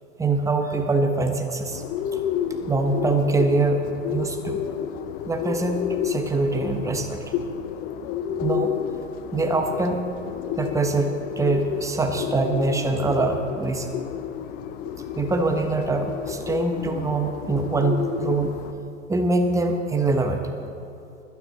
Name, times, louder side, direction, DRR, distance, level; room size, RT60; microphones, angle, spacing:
voice 1, 0.2-1.8 2.7-3.8 4.1-4.6 5.3-7.2 8.4-8.7 9.3-10.0 10.6-13.9 15.2-18.5 19.1-20.4, right 3 dB, 10° right, 5 dB, 1.1 m, -24 dB
Bird, 1.7-18.7, left 8 dB, 20° left, 0.5 m, -31 dB
20.5 x 9.4 x 4.1 m, 2.8 s
figure-of-eight pair, 95°, 41 cm